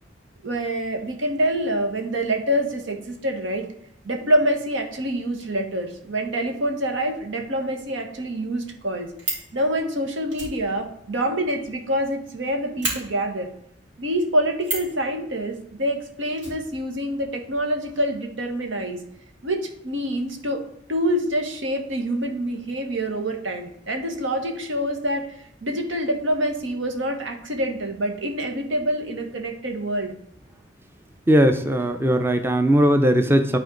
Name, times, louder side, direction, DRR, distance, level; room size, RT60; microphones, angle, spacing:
voice 1, 0.4-3.6 4.0-9.1 9.5-13.5 14.0-19.0 19.4-20.6 20.9-25.3 25.6-30.1, right 1 dB, 85° right, 4 dB, 1.4 m, -26 dB
Fire, 9.2-9.5 10.3-12.1 12.3-12.4 12.8-13.0 14.6-15.0 16.4-17.3 17.5-17.6 17.8-17.9, right 2 dB, 65° right, 3.6 m, -31 dB
voice 2, 31.3-33.6, equal, 10° right, 7 dB, 0.5 m, -18 dB
12.0 x 4.3 x 3.9 m, 0.75 s
head